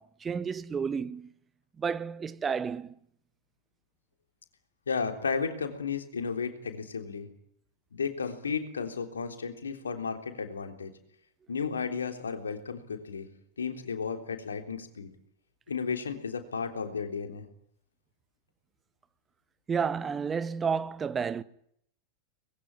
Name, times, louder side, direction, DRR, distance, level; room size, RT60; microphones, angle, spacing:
voice 1, 0.0-1.3 1.8-3.0 19.7-21.4, right 6 dB, 20° right, 1.2 m, -31 dB
voice 2, 4.9-7.3 7.9-10.9 11.5-13.3 13.6-15.1 15.7-17.5, left 5 dB, 70° left, 3.5 m, -33 dB
24.5 x 21.0 x 10.0 m
figure-of-eight pair, 90°, 0 cm